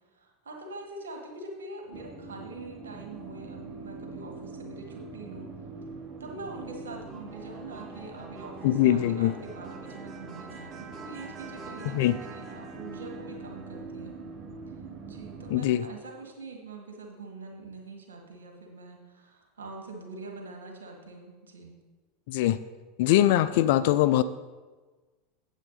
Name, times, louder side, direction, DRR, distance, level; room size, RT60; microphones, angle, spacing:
voice 1, 0.1-5.5 6.2-14.1 15.0-21.7, right 3 dB, 85° right, 1 dB, 1.9 m, -44 dB
sound 1, 1.9-15.6, right 3 dB, 35° right, 1.3 m, -42 dB
voice 2, 8.6-9.3 11.9-12.1 15.5-15.8 22.3-22.6 23.0-24.2, left 13 dB, 65° left, 14 dB, 0.3 m, -22 dB
8.2 x 8.1 x 4.0 m, 1.3 s
hypercardioid pair, 95°, 0 cm